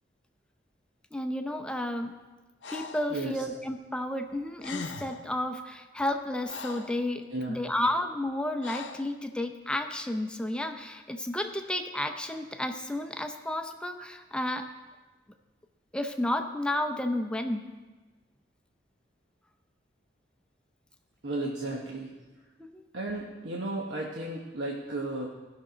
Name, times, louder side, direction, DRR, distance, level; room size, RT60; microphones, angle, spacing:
voice 1, 1.1-2.1 2.7-14.6 15.9-17.6 22.6-22.8, left 1 dB, 5° left, 5 dB, 0.6 m, -32 dB
Breathing, 2.6-3.1 4.3-4.4 4.6-5.3 6.0-7.0 8.6-9.1, left 4 dB, 90° left, 0.7 m, -40 dB
voice 2, 3.1-3.4 7.3-7.7 21.2-22.2 22.9-25.3, right 2 dB, 85° right, -2 dB, 1.0 m, -34 dB
15.5 x 6.1 x 4.0 m, 1.2 s
head